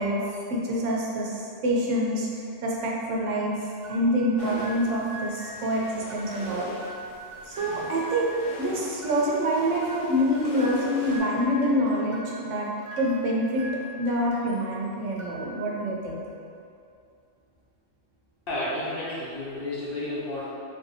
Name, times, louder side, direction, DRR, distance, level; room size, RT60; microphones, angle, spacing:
voice 1, 0.0-6.7 7.5-12.7 13.0-13.7 14.0-16.2, equal, 80° right, -3 dB, 0.9 m, -26 dB
sound 1, 3.8-14.7 15.1-15.9, equal, 60° right, 0.3 m, -43 dB
sound 2, 4.4-11.2, equal, 85° left, 1.1 m, -41 dB
voice 2, 18.5-20.5, left 1 dB, 55° left, -7 dB, 0.8 m, -31 dB
3.6 x 2.7 x 2.6 m, 2.5 s
omnidirectional pair, 1.3 m